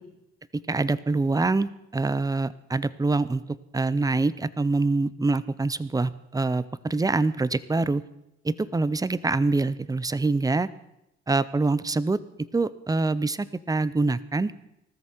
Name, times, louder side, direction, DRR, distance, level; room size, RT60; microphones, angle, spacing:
voice 1, 0.5-3.4 3.7-8.0 8.4-10.7 11.3-12.2 12.5-14.5, right 3 dB, 10° right, 17 dB, 0.6 m, -25 dB
20.0 x 13.5 x 4.5 m, 0.86 s
cardioid pair, 90°, 30 cm